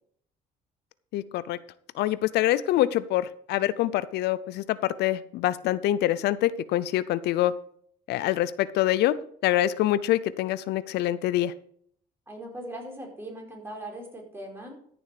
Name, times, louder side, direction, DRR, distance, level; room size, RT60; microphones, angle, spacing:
voice 1, 1.1-1.6 1.9-7.5 8.1-11.5, left 13 dB, 80° left, 16 dB, 0.6 m, -25 dB
voice 2, 12.3-14.8, right 1 dB, 15° right, 0 dB, 4.7 m, -39 dB
14.0 x 7.0 x 5.0 m, 0.63 s
cardioid pair, 110°, 17 cm